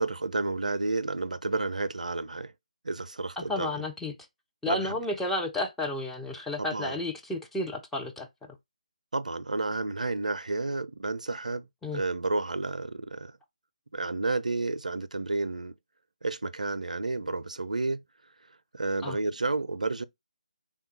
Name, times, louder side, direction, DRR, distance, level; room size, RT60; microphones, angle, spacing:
voice 1, 0.0-2.5 2.8-3.8 4.7-5.0 6.6-7.0 9.1-11.7 11.9-13.3 13.9-15.8 16.2-18.0 18.7-20.0, right 3 dB, 70° right, 0.4 m, -31 dB
voice 2, 3.4-4.1 4.6-8.3 11.8-12.0 19.0-19.2, left 2 dB, 5° left, 0.5 m, -32 dB
3.5 x 2.3 x 4.2 m
figure-of-eight pair, 150°, 4 cm